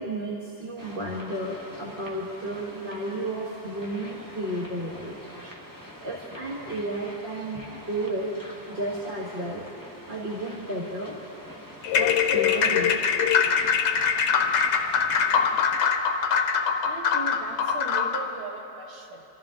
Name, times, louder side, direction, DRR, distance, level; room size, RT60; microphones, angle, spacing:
voice 1, 0.0-5.2 6.0-8.3 8.7-9.6 10.1-11.2 11.9-13.0, right 1 dB, 25° right, -6 dB, 1.6 m, -32 dB
sound 1, 0.8-15.8, equal, 10° right, 1.2 m, -45 dB
sound 2, 11.8-18.3, left 6 dB, 65° left, 1.4 m, -23 dB
voice 2, 16.8-19.2, right 3 dB, 80° right, 0 dB, 2.3 m, -38 dB
27.0 x 14.0 x 3.8 m, 2.9 s
omnidirectional pair, 2.2 m